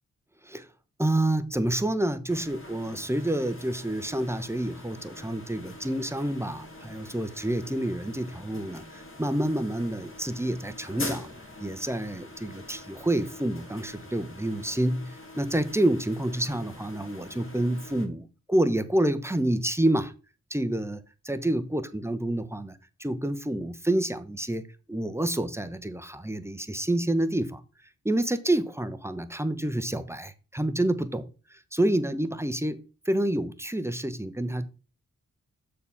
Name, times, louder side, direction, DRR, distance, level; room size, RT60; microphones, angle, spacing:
voice 1, 1.0-11.3 11.6-20.1 20.5-27.6 28.0-32.8 33.1-34.7, right 1 dB, 10° right, 1.0 m, -28 dB
sound 1, 2.3-18.1, left 2 dB, 40° left, 2.0 m, -44 dB
6.7 x 4.2 x 5.8 m
cardioid pair, 40°, 33 cm